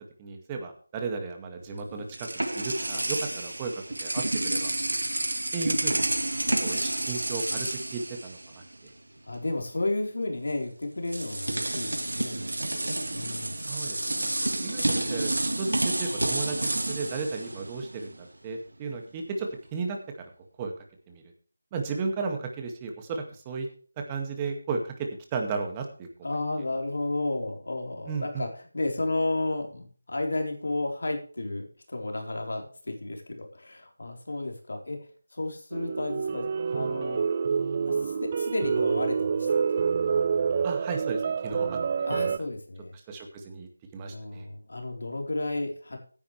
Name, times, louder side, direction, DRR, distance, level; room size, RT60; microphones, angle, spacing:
voice 1, 0.2-4.8 5.5-6.1 6.6-8.9 13.7-14.3 14.6-20.0 20.6-20.7 21.1-21.2 21.7-23.7 24.0-26.4 28.1-28.5 40.6-42.1 42.9-44.5, right 4 dB, 15° right, 3 dB, 2.0 m, -35 dB
sound 1, 1.6-8.9 9.2-9.4 10.5-10.6 11.1-18.2, right 1 dB, 85° right, 1.9 m, -30 dB
voice 2, 9.3-13.6 26.2-28.5 28.7-35.0 35.3-36.5 36.7-37.2 37.9-39.5 42.0-42.9 44.1-46.0, left 2 dB, 70° left, 2 dB, 4.1 m, -32 dB
sound 2, 35.7-42.4, right 6 dB, 30° right, 0.4 m, -27 dB
16.0 x 10.5 x 3.3 m, 0.42 s
figure-of-eight pair, 165°, 0 cm